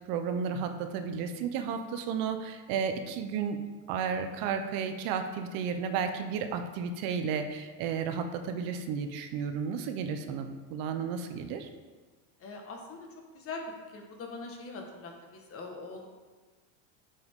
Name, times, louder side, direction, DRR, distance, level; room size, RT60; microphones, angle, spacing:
voice 1, 0.1-3.6 3.9-11.7, right 6 dB, 60° right, 7 dB, 0.9 m, -33 dB
voice 2, 12.4-13.1 13.3-13.6 13.9-16.1, left 4 dB, 35° left, 2 dB, 1.5 m, -42 dB
8.0 x 7.6 x 3.7 m, 1.3 s
supercardioid pair, 140°, 40 cm